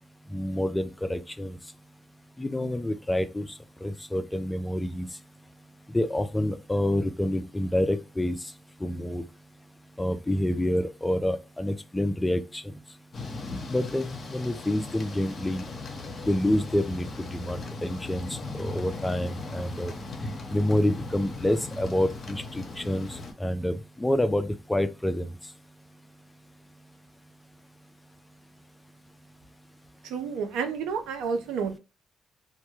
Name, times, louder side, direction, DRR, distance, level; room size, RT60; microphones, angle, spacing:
voice 1, 0.3-1.6 2.4-3.5 3.8-5.1 5.9-8.4 8.8-9.2 10.0-12.7 13.7-15.7 16.2-19.9 20.5-25.3, left 1 dB, 15° left, 0.4 m, -28 dB
Thunder / Rain, 13.1-23.3, left 2 dB, 45° left, 0.7 m, -38 dB
voice 2, 30.0-31.8, right 6 dB, 85° right, 0.5 m, -30 dB
2.1 x 2.1 x 3.0 m
supercardioid pair, 60°, 0 cm